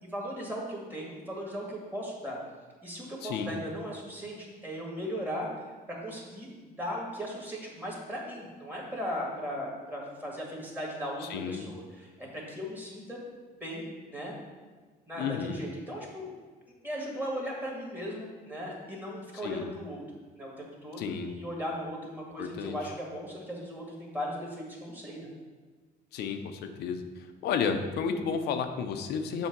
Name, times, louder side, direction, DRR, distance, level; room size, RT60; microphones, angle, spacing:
voice 1, 0.0-2.4 2.8-5.5 6.0-13.2 13.6-14.3 15.1-16.3 16.8-20.0 20.4-25.3, equal, 10° right, -3 dB, 1.9 m, -37 dB
voice 2, 3.2-3.6 11.2-11.7 15.2-15.6 19.4-19.7 21.0-21.3 22.4-22.9 26.1-27.0 27.4-29.5, left 6 dB, 75° left, 7 dB, 0.6 m, -32 dB
7.0 x 2.8 x 5.9 m, 1.4 s
cardioid pair, 110°, 17 cm